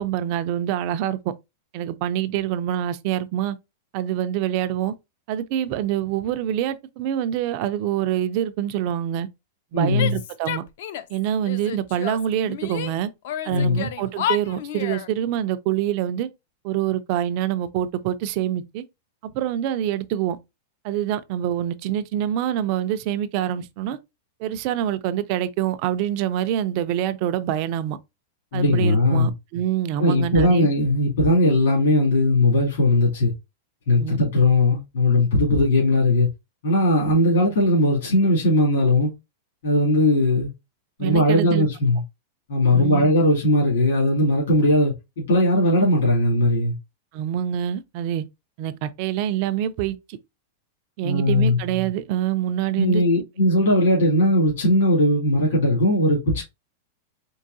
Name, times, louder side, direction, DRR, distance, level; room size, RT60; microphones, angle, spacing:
voice 1, 0.0-1.3 1.7-3.6 3.9-4.9 5.3-9.3 9.7-10.6 11.1-13.1 13.4-16.3 16.6-18.8 19.2-20.4 20.8-24.0 24.4-28.0 28.5-30.7 34.0-34.2 41.0-41.7 42.7-43.1 47.1-48.2 48.6-50.2 51.0-53.0, right 11 dB, 35° right, 0.3 m, -25 dB
voice 2, 9.7-10.2 13.5-13.9 28.5-29.3 30.0-33.3 33.9-36.3 36.6-39.1 39.6-40.5 41.0-42.0 42.5-46.7 51.0-51.6 52.8-56.4, left 1 dB, 70° left, 2.3 m, -19 dB
Female speech woman speaking / Yell, 10.0-11.2 11.4-12.9 13.2-15.1, left 10 dB, 50° left, 0.4 m, -30 dB
4.5 x 3.2 x 2.6 m
supercardioid pair, 180°, 0 cm